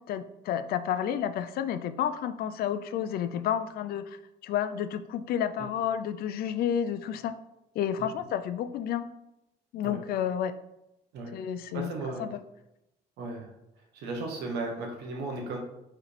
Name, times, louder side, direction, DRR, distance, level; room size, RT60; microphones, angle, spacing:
voice 1, 0.0-7.3 7.8-9.1 9.7-10.5 11.3-11.9 12.2-12.4, left 9 dB, 65° left, 11 dB, 0.4 m, -30 dB
voice 2, 11.7-12.3 13.2-13.5 13.9-15.6, right 3 dB, 80° right, 0 dB, 0.9 m, -35 dB
4.7 x 3.3 x 3.2 m, 0.86 s
cardioid pair, 110°, 17 cm